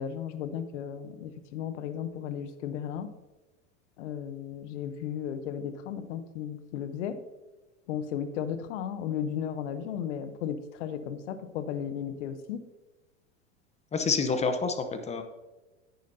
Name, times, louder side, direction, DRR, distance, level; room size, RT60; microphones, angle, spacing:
voice 1, 0.0-3.1 4.0-7.2 7.9-12.6, left 8 dB, 75° left, 11 dB, 0.9 m, -35 dB
voice 2, 13.9-15.2, left 4 dB, 20° left, 8 dB, 0.9 m, -28 dB
10.5 x 9.2 x 2.7 m, 1.1 s
hypercardioid pair, 110°, 36 cm